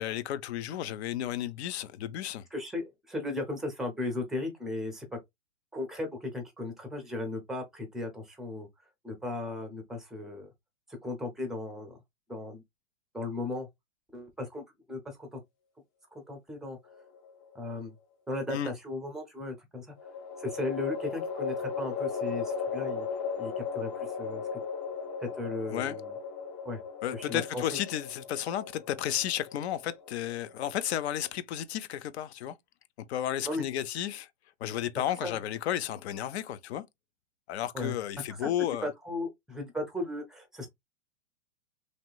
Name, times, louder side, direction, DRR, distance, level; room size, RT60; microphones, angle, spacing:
voice 1, 0.0-2.4 18.5-18.7 25.7-26.0 27.0-32.5 33.1-34.3 34.6-36.8 37.5-38.9, left 11 dB, 55° left, 0.6 m, -33 dB
voice 2, 2.5-5.2 5.7-8.7 9.0-10.5 11.0-12.0 12.3-12.6 13.1-13.7 14.1-15.4 16.1-16.8 17.5-17.9 18.3-19.9 20.4-23.1 23.4-24.4 25.2-26.2 26.7-26.8 27.1-27.6 33.5-33.6 35.2-35.4 37.7-37.9 38.3-38.5 38.8-40.7, left 2 dB, ahead, 0.5 m, -36 dB
sound 1, 16.9-17.7 20.0-31.3, left 5 dB, 35° left, 0.9 m, -37 dB
3.1 x 2.8 x 2.3 m
hypercardioid pair, 135°, 38 cm